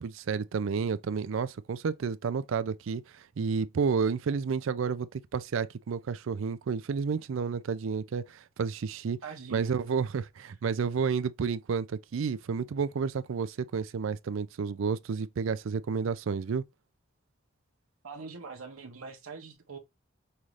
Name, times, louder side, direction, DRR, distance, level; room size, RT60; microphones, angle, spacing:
voice 1, 0.0-9.2 9.5-16.6, right 5 dB, 70° right, 0.4 m, -31 dB
voice 2, 9.2-9.7 18.0-19.8, right 4 dB, 85° right, 0.8 m, -43 dB
5.5 x 2.4 x 3.1 m
head